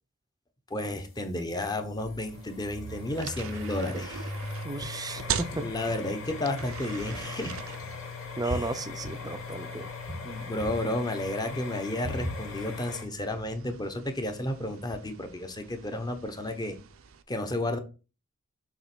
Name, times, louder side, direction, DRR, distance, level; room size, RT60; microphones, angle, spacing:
voice 1, 0.7-4.3 5.5-7.5 8.4-8.7 10.2-16.8 17.3-17.8, left 1 dB, 20° left, 1.1 m, -32 dB
sound 1, 0.8-13.0, left 2 dB, 75° left, 3.2 m, -38 dB
sound 2, 2.2-17.2, right 8 dB, 80° right, 0.6 m, -43 dB
voice 2, 4.6-5.7 8.4-9.9, right 2 dB, 20° right, 0.5 m, -34 dB
7.2 x 3.2 x 6.1 m
head